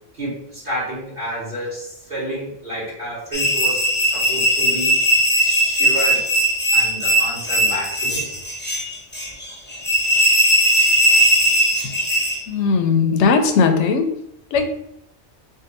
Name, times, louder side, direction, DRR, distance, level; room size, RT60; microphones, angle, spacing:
voice 1, 0.1-4.9 5.4-6.3 6.7-8.3, equal, 55° right, -10 dB, 1.7 m, -30 dB
sound 1, 3.3-12.4, equal, 10° left, 0.6 m, -18 dB
voice 2, 12.5-14.1 14.5-14.7, left 5 dB, 75° left, 5 dB, 0.9 m, -17 dB
3.7 x 2.3 x 4.0 m, 0.79 s
omnidirectional pair, 1.2 m